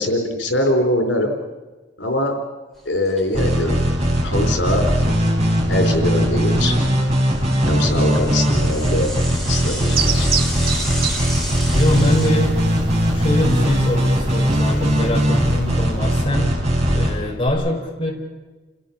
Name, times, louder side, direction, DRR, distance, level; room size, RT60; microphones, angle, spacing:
voice 1, 0.0-1.3 2.0-2.4 2.9-3.9 4.2-5.1 5.7-6.8 7.7-9.1 9.5-10.4, left 1 dB, 90° left, 4 dB, 4.2 m, -22 dB
Bicycle / Mechanisms, 2.8-3.4 3.7-3.8 4.1-4.2 4.8-6.0 6.4-12.3, equal, ahead, 5.1 m, -33 dB
sound 1, 3.3-17.5, equal, 35° right, 4.6 m, -19 dB
voice 2, 7.6-8.4 11.7-12.6 13.1-16.5 16.9-18.1, left 1 dB, 30° left, -1 dB, 4.6 m, -23 dB
sound 2, 9.9-16.2, right 4 dB, 55° right, 2.2 m, -29 dB
29.5 x 17.0 x 7.3 m, 1.3 s
head